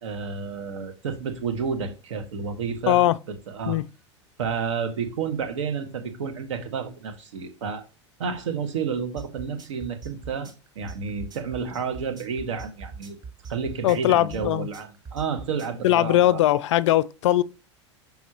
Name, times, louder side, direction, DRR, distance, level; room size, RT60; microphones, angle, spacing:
voice 1, 0.0-3.0 3.3-3.8 4.4-7.8 8.2-13.2 13.5-16.4, right 6 dB, 75° right, 1.5 m, -30 dB
voice 2, 2.9-3.2 3.7-3.9 13.8-14.7 15.8-17.4, left 13 dB, 70° left, 0.4 m, -20 dB
sound 1, 9.2-15.8, right 5 dB, 30° right, 2.4 m, -41 dB
6.1 x 5.6 x 2.9 m
hypercardioid pair, 100°, 16 cm